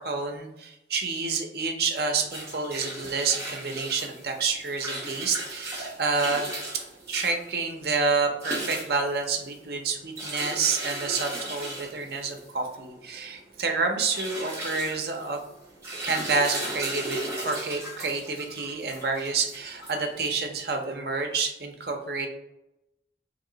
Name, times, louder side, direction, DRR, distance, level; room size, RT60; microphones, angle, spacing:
voice 1, 0.0-6.5 7.1-15.4 16.0-22.3, right 4 dB, 60° right, 3 dB, 0.6 m, -28 dB
sound 1, 2.1-20.5, right 1 dB, 15° right, 0.9 m, -37 dB
3.0 x 2.9 x 3.9 m, 0.91 s
head